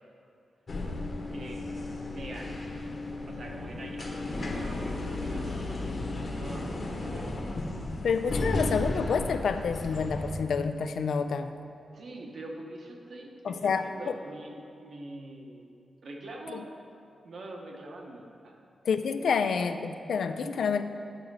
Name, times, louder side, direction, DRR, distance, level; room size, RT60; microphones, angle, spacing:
sound 1, 0.7-10.4, left 2 dB, 40° left, 1.1 m, -34 dB
voice 1, 1.3-1.7 2.1-2.6 3.2-6.0 6.3-7.3 11.9-15.7 16.0-16.7 17.2-18.5, right 2 dB, 55° right, 0 dB, 1.1 m, -44 dB
voice 2, 8.0-11.5 13.4-14.1 16.5-16.6 18.8-20.8, left 5 dB, 75° left, 9 dB, 0.4 m, -28 dB
10.5 x 6.3 x 4.8 m, 2.5 s
wide cardioid pair, 180°, 0 cm